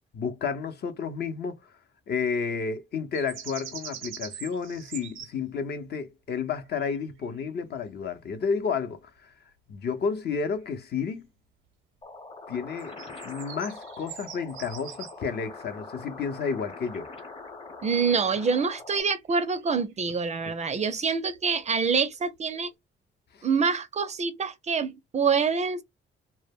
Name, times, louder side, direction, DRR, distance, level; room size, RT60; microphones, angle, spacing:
voice 1, 0.1-1.7 2.1-9.3 9.7-11.3 12.5-12.9 13.2-17.1 23.3-23.5, left 5 dB, 55° left, 0.7 m, -31 dB
sound 1, 3.1-5.3 6.5-6.9 7.2-7.4 10.6-10.8 12.8-15.1 19.4-20.0 21.3-22.2 22.5-22.7, right 9 dB, 85° right, 0.6 m, -43 dB
sound 2, 12.0-19.0, left 3 dB, 30° left, 0.9 m, -43 dB
voice 2, 17.8-22.7 23.4-25.8, right 5 dB, 35° right, 0.4 m, -26 dB
2.1 x 2.1 x 3.4 m
cardioid pair, 90°, 20 cm